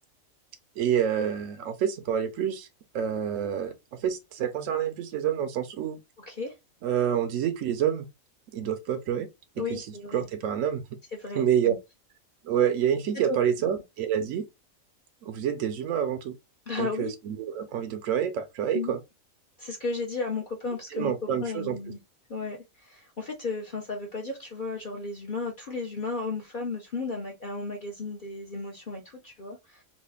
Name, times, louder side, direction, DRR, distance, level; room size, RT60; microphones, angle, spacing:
voice 1, 0.8-2.7 2.9-6.0 6.8-8.1 8.5-9.3 9.7-9.9 10.1-10.8 11.4-11.7 12.4-14.5 15.2-16.4 16.8-19.0 20.9-21.8, right 9 dB, 75° right, 0.9 m, -27 dB
voice 2, 6.2-6.6 9.6-10.3 11.1-11.8 13.1-13.4 16.7-17.1 18.7-18.9 19.6-22.0 22.3-29.8, left 3 dB, 45° left, 0.8 m, -34 dB
3.2 x 2.4 x 3.4 m
omnidirectional pair, 1.4 m